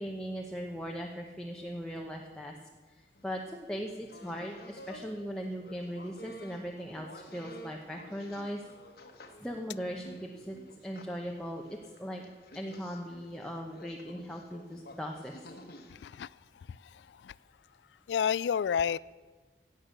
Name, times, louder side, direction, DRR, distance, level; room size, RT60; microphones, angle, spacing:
voice 1, 0.0-2.6 2.9-8.6 9.4-10.6 10.8-12.3 12.5-15.3, equal, 5° left, 0.9 m, -39 dB
sound 1, 3.2-5.1 5.4-16.1, equal, 60° left, 1.3 m, -52 dB
voice 2, 18.1-19.0, left 7 dB, 80° left, 0.3 m, -28 dB
16.5 x 8.7 x 6.7 m
head